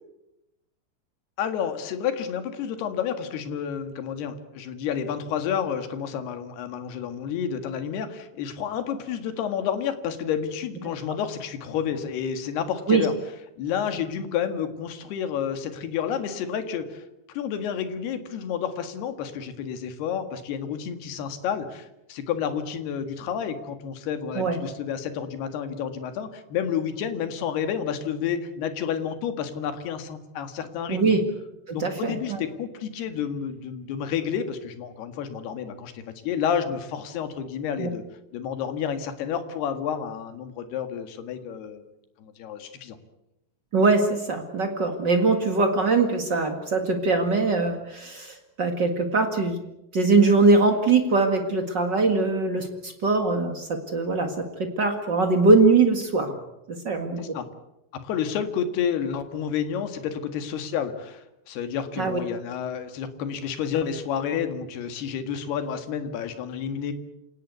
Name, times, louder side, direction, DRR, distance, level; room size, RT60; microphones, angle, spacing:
voice 1, 1.4-13.1 13.6-17.0 17.3-31.2 31.7-38.0 38.3-41.8 42.2-43.0 57.2-57.5 57.9-66.9, left 8 dB, 65° left, 8 dB, 3.6 m, -30 dB
voice 2, 30.9-31.2 31.7-32.4 37.8-37.9 43.7-49.6 49.9-56.3 56.7-57.3 62.0-62.2, right 3 dB, 60° right, 5 dB, 1.1 m, -22 dB
28.5 x 18.0 x 8.2 m, 0.90 s
omnidirectional pair, 5.3 m